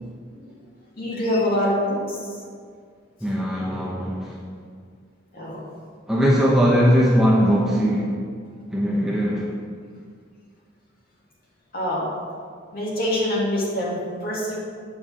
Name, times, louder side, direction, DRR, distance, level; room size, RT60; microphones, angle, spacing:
voice 1, 1.0-2.4 3.7-3.8 5.3-5.6 11.7-12.1 12.7-14.6, left 1 dB, 45° left, -5 dB, 2.4 m, -25 dB
voice 2, 3.2-4.4 6.1-8.2 8.7-9.5, equal, 5° right, -5 dB, 0.9 m, -20 dB
9.0 x 5.4 x 6.2 m, 2.1 s
head